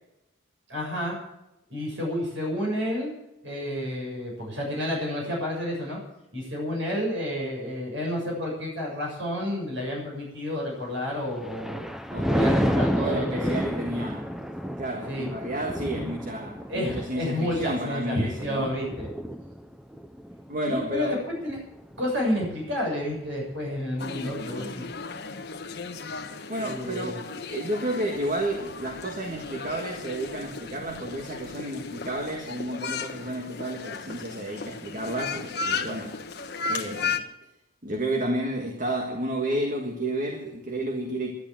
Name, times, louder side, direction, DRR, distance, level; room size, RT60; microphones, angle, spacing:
voice 1, 0.7-1.2 1.7-3.1 3.4-6.0 6.3-11.9 12.2-13.6 15.1-15.3 15.9-16.1 16.7-19.1 20.7-21.2 21.4-21.6 22.0-24.8 26.2-27.2, left 1 dB, 65° right, -2 dB, 6.9 m, -30 dB
Thunder, 11.1-22.6 23.0-23.4, equal, ahead, 0.6 m, -31 dB
voice 2, 12.1-14.3 14.8-18.8 20.5-21.2 26.5-36.2 36.7-37.3 37.8-41.3, right 1 dB, 40° right, 3 dB, 1.7 m, -31 dB
sound 1, 24.0-37.2, left 4 dB, 50° left, 1.3 m, -35 dB
11.5 x 11.5 x 9.1 m, 0.90 s
head